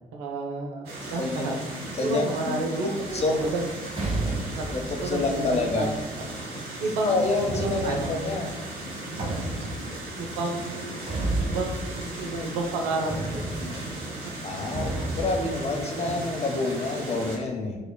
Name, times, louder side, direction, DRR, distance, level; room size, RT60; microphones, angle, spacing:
voice 1, 0.1-1.5 2.0-3.7 4.6-4.7 5.0-5.9 6.8-7.3 7.6-8.1 10.2-13.8 15.9-16.2, right 2 dB, 70° right, 2 dB, 0.5 m, -31 dB
sound 1, 0.8-17.4, right 1 dB, 55° right, 1.0 m, -37 dB
voice 2, 1.0-1.6 2.0-2.6 3.1-3.4 4.7-5.9 7.0-8.5 14.4-17.8, left 3 dB, 35° left, 2 dB, 0.7 m, -28 dB
sound 2, 3.0-6.4 7.4-12.8 13.1-15.9, right 2 dB, 30° right, 0.9 m, -33 dB
4.9 x 2.2 x 2.2 m, 1.2 s
figure-of-eight pair, 45°, 20 cm